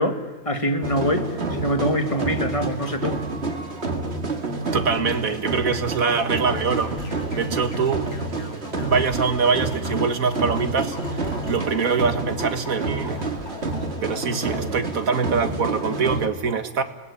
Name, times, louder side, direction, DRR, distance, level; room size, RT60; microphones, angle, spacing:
voice 1, 0.0-3.2, equal, 20° left, 2.3 m, -24 dB
sound 1, 0.8-16.3, right 3 dB, 45° right, 2.4 m, -29 dB
voice 2, 4.7-8.1 8.4-13.2 14.0-16.8, right 5 dB, 70° right, 2.2 m, -24 dB
sound 2, 4.9-11.6, equal, 50° left, 7.7 m, -50 dB
sound 3, 6.4-14.8, left 1 dB, 80° left, 3.1 m, -38 dB
29.5 x 20.0 x 10.0 m
omnidirectional pair, 1.5 m